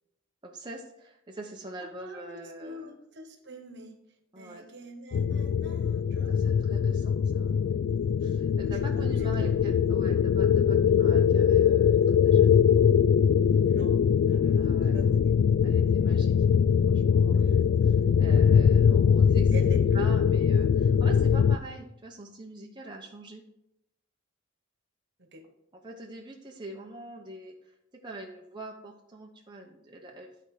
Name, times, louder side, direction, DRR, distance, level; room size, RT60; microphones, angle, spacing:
voice 1, 0.4-2.9 4.3-4.7 6.2-7.8 8.2-12.6 14.6-15.1 15.6-16.6 16.9-17.6 18.2-19.7 19.9-23.4 25.8-27.7 28.0-30.3, right 2 dB, 20° right, -1 dB, 0.8 m, -44 dB
voice 2, 2.0-4.0 4.3-6.3 8.9-9.5 13.7-13.9 14.2-15.4 17.3-17.8 19.5-20.1 25.2-25.4, right 1 dB, 55° right, 6 dB, 1.2 m, -44 dB
sound 1, 5.1-21.6, left 7 dB, 75° left, 0.3 m, -22 dB
11.0 x 4.5 x 4.9 m, 0.84 s
head